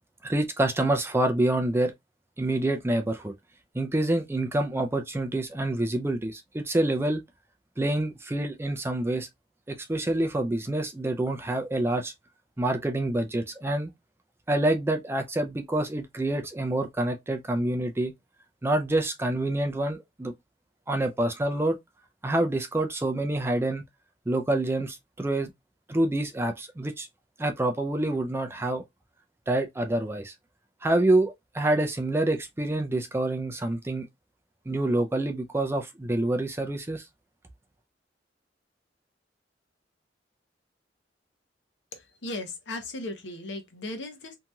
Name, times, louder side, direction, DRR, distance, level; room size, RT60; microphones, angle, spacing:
voice 1, 0.2-1.9 2.4-3.3 3.7-7.2 7.8-9.3 9.7-12.1 12.6-13.9 14.5-18.1 18.6-20.3 20.9-21.8 22.2-23.8 24.3-25.5 25.9-27.1 27.4-28.8 29.5-30.3 30.8-34.1 34.7-37.0, right 1 dB, 15° right, 0.4 m, -27 dB
voice 2, 41.9-44.3, left 2 dB, 80° left, 0.9 m, -37 dB
2.9 x 2.7 x 2.2 m
head